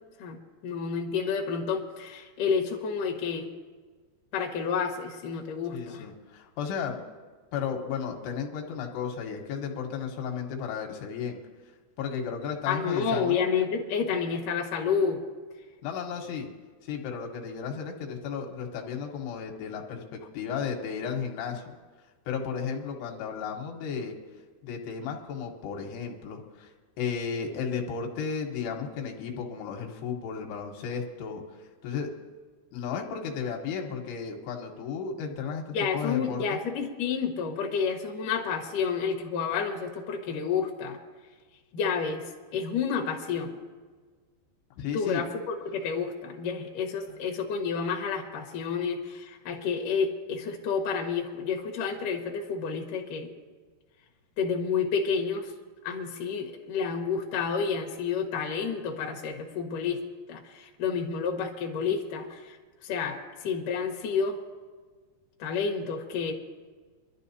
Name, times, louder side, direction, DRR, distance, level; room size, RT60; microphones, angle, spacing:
voice 1, 0.6-3.5 4.3-6.1 12.7-15.2 35.7-41.0 41.7-43.6 44.9-45.4 45.7-53.3 54.4-55.5 55.8-60.0 60.3-62.6 62.8-64.4 65.4-66.3, left 6 dB, 60° left, 1 dB, 2.9 m, -30 dB
voice 2, 5.7-7.0 7.5-11.4 12.0-13.4 15.8-16.5 16.8-21.6 22.3-24.2 24.6-26.7 27.0-31.4 31.8-32.1 32.7-35.6 35.9-36.4 44.8-45.3, left 6 dB, 85° left, 1 dB, 3.4 m, -34 dB
25.0 x 12.5 x 2.8 m, 1.5 s
omnidirectional pair, 4.7 m